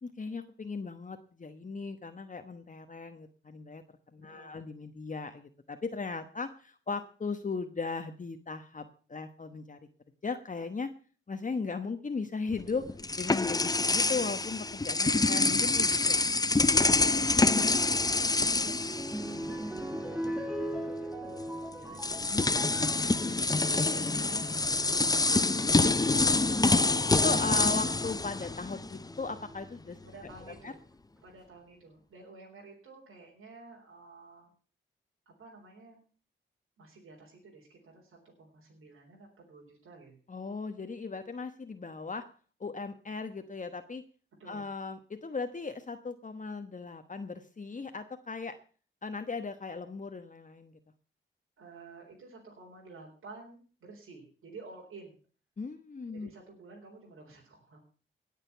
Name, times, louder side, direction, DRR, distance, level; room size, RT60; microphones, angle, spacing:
voice 1, 0.0-3.8 4.1-9.8 10.2-10.9 11.3-12.9 13.2-16.3 17.4-18.0 22.3-22.5 26.3-26.8 27.1-30.0 30.6-30.7 40.3-42.2 42.6-44.0 44.5-48.6 49.0-50.7 55.6-56.3, left 4 dB, 40° left, 7 dB, 1.1 m, -37 dB
voice 2, 4.3-4.6 16.9-17.3 17.9-22.2 22.9-26.0 30.0-30.8 31.2-34.5 35.3-36.0 36.8-40.2 44.4-44.7 51.6-55.2 56.1-57.8, right 3 dB, 85° right, -2 dB, 4.0 m, -52 dB
sound 1, 12.5-19.8 20.1-20.3 21.4-21.5 21.9-29.1, left 3 dB, 20° left, 0.6 m, -26 dB
sound 2, 17.8-23.4 24.1-24.6 25.8-25.9 26.6-26.9 29.1-29.7 30.4-30.5 30.7-30.8, equal, 5° right, 1.9 m, -39 dB
18.0 x 6.7 x 6.8 m, 0.41 s
cardioid pair, 65°, 21 cm